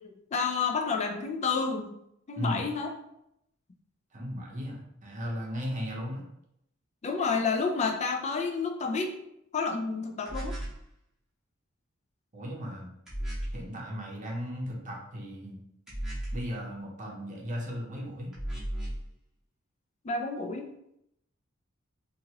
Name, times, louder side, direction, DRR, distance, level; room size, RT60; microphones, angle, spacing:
voice 1, 0.0-2.0 2.3-2.9 7.0-9.1 9.5-10.6 20.0-20.7, left 4 dB, 35° left, 3 dB, 0.4 m, -30 dB
voice 2, 4.1-6.2 12.3-12.9 13.5-15.6 16.3-18.3, equal, 40° right, -2 dB, 0.7 m, -36 dB
sound 1, 10.3-10.8 13.1-13.7 15.9-16.5 18.3-19.1, right 1 dB, 5° right, 0.9 m, -35 dB
2.9 x 2.5 x 2.8 m, 0.78 s
head